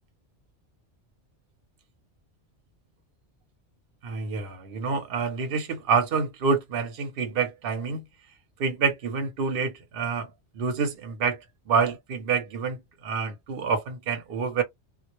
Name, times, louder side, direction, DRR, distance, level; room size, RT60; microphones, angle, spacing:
voice 1, 4.0-8.0 8.6-10.3 10.6-11.4 11.7-14.6, right 5 dB, 60° right, 0.8 m, -27 dB
2.1 x 2.0 x 2.9 m
omnidirectional pair, 1.2 m